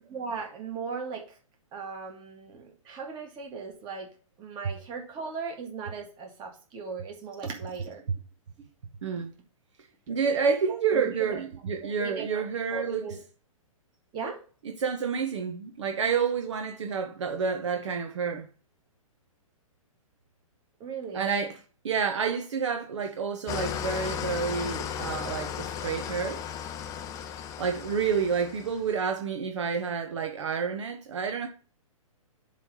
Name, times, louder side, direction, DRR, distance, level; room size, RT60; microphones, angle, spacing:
voice 1, 0.1-1.4 1.7-4.1 4.4-8.0 10.9-11.4 11.8-13.2 14.1-14.4 20.8-21.3, right 5 dB, 25° right, 1.9 m, -37 dB
voice 2, 9.0-9.3 10.1-13.0 14.8-18.5 21.1-21.5 21.8-26.4 27.6-31.5, right 6 dB, 55° right, 0.9 m, -29 dB
Engine starting / Idling, 23.5-28.9, left 8 dB, 20° left, 0.5 m, -35 dB
7.5 x 3.3 x 5.5 m
figure-of-eight pair, 120°, 18 cm